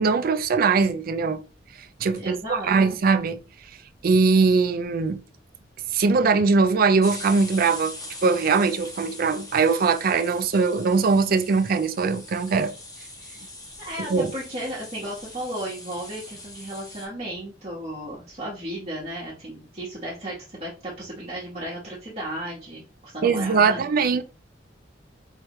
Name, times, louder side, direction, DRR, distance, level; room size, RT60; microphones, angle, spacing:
voice 1, 0.0-1.4 2.0-3.4 4.0-5.2 5.9-12.7 14.1-14.3 23.2-24.2, right 4 dB, 50° right, 0.4 m, -21 dB
sound 1, 1.8-2.7 3.0-3.1 3.2-3.3 3.5-4.1 4.5-4.6 4.8-5.1 6.0-6.1 6.9-17.0, left 2 dB, 20° left, 1.3 m, -42 dB
voice 2, 2.2-2.7 13.8-23.9, right 1 dB, 35° right, 1.2 m, -34 dB
4.6 x 3.2 x 3.0 m
head